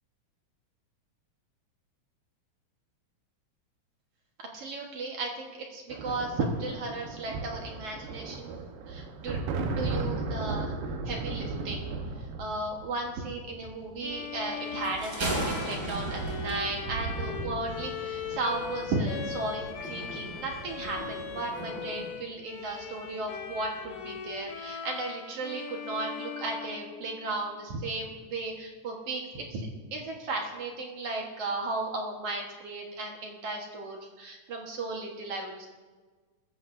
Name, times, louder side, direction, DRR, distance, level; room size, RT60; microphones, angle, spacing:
voice 1, 4.4-9.4 9.7-10.7 11.1-11.9 12.2-35.7, right 2 dB, 55° right, 0 dB, 2.0 m, -35 dB
sound 1, 5.9-21.6 22.8-23.1 23.3-24.0, right 3 dB, 85° right, 2.9 m, -37 dB
Bowed string instrument, 14.0-27.5, left 7 dB, 75° left, 2.6 m, -40 dB
Thunder, 14.8-22.1, right 1 dB, 30° right, 2.5 m, -38 dB
20.0 x 14.5 x 2.6 m, 1.4 s
omnidirectional pair, 4.0 m